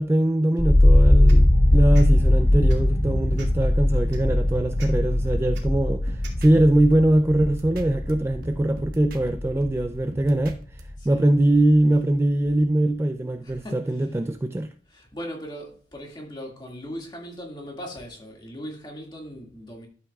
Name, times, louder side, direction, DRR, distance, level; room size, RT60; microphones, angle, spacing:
voice 1, 0.0-14.7, right 1 dB, 15° right, 0.3 m, -22 dB
sound 1, 0.6-10.6 10.9-11.6, left 1 dB, 70° left, 1.1 m, -20 dB
sound 2, 1.3-1.4 1.9-2.1 2.6-2.9 3.3-3.6 4.1-4.2 4.8-4.9 5.5-5.6 6.2-6.4, right 3 dB, 80° right, 2.4 m, -43 dB
sound 3, 5.7-8.1 8.4-10.8, right 1 dB, 50° right, 1.3 m, -43 dB
voice 2, 11.0-11.3 13.4-14.1 14.9-19.9, equal, 25° left, 2.0 m, -39 dB
12.0 x 8.3 x 2.3 m
head